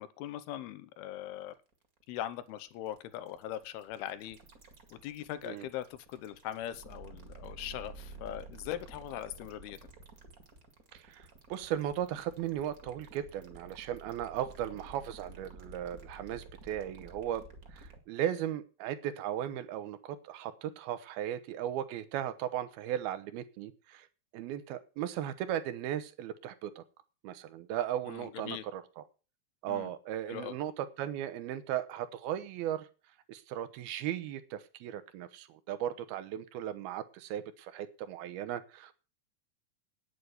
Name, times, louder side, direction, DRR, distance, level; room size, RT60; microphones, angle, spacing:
voice 1, 0.0-1.5 2.1-4.4 4.9-9.8 28.1-28.6 29.7-29.9 30.3-30.6, left 12 dB, 90° left, 14 dB, 2.8 m, -40 dB
sound 1, 1.3-18.0, right 3 dB, 35° right, 1.6 m, -52 dB
voice 2, 10.9-17.4 17.7-24.1 24.3-26.8 27.2-29.0 29.6-32.9 33.3-38.9, right 11 dB, 80° right, 12 dB, 2.9 m, -37 dB
9.4 x 8.6 x 8.1 m, 0.35 s
omnidirectional pair, 4.4 m